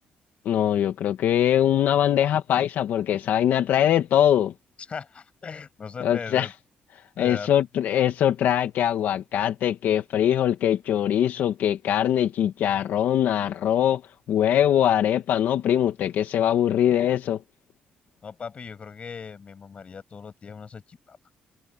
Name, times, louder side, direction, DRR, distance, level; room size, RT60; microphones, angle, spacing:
voice 1, 0.4-4.5 6.0-6.5 7.2-14.0 14.3-17.4, left 10 dB, 75° left, 1.6 m, -22 dB
voice 2, 4.9-6.5 7.2-7.5 18.2-21.2, left 6 dB, 35° left, 7.1 m, -38 dB
cardioid pair, 135°, 3 cm